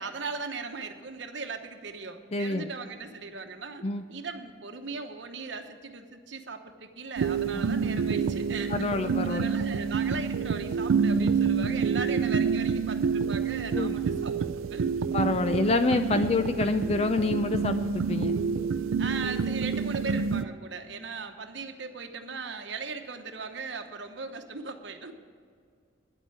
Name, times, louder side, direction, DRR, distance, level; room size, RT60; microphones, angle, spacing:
voice 1, 0.0-14.9 16.1-16.3 19.0-25.1, right 4 dB, 65° right, 5 dB, 1.0 m, -38 dB
voice 2, 2.3-2.7 3.8-4.0 7.5-7.6 8.7-9.5 13.7-14.0 15.1-18.3, left 3 dB, 30° left, 9 dB, 0.4 m, -27 dB
sound 1, 7.2-20.4, right 6 dB, 90° right, 0.4 m, -28 dB
10.0 x 8.1 x 8.8 m, 2.1 s
head